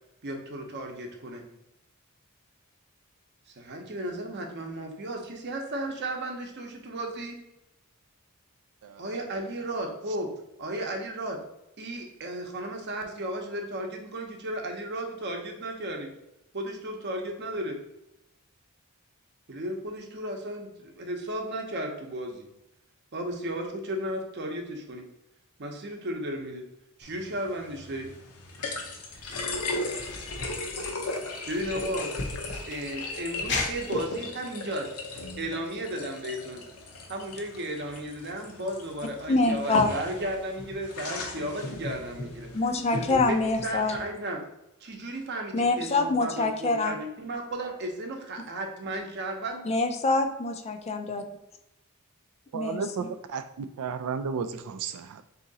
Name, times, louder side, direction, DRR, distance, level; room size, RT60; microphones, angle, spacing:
voice 1, 0.2-1.4 3.5-7.4 9.0-10.3 10.6-11.4 11.8-16.1 16.5-17.8 19.5-22.4 23.1-25.0 25.6-26.6 27.0-28.1 31.4-32.1 32.7-34.9 35.4-36.6 37.1-42.5 42.9-44.4 44.8-49.6, right 1 dB, 50° right, 3 dB, 0.7 m, -34 dB
sound 1, 27.0-44.0, left 2 dB, 85° left, 0.8 m, -37 dB
sound 2, 29.1-34.0, left 3 dB, 55° left, 0.7 m, -37 dB
voice 2, 39.3-39.9 42.5-44.0 45.5-46.9 49.6-51.2 52.5-53.1, left 3 dB, 30° left, 6 dB, 0.3 m, -25 dB
voice 3, 52.5-53.5 53.8-55.2, right 6 dB, 85° right, 9 dB, 0.3 m, -33 dB
3.6 x 2.8 x 3.9 m, 0.90 s
head